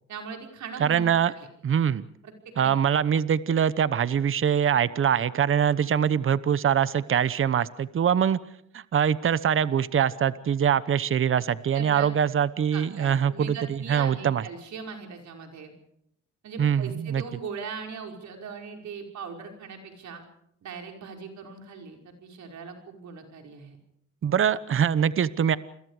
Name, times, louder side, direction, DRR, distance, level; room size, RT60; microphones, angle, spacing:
voice 1, 0.1-1.5 2.2-2.7 11.7-12.1 12.7-15.7 16.4-20.2 20.6-23.8, right 6 dB, 65° right, 3 dB, 5.4 m, -40 dB
voice 2, 0.8-1.3 1.6-2.1 2.6-8.4 8.7-14.4 16.6-17.2 24.2-25.6, right 8 dB, 45° right, 16 dB, 1.0 m, -23 dB
29.0 x 22.0 x 5.0 m, 0.73 s
cardioid pair, 90°, 30 cm